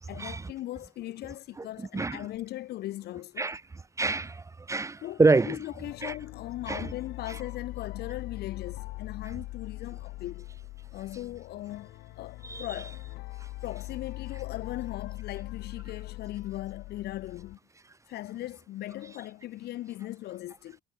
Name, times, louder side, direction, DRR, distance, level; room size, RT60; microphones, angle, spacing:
voice 1, 0.1-3.5 5.0-10.5 10.9-11.9 12.2-13.0 13.6-17.6 18.1-20.8, left 15 dB, 75° left, 2.5 m, -39 dB
voice 2, 4.0-5.6 6.0-6.1 6.7-6.9 12.4-12.7, right 3 dB, 20° right, 0.9 m, -26 dB
sound 1, 5.8-17.5, left 20 dB, 90° left, 7.5 m, -41 dB
cardioid pair, 110°, 17 cm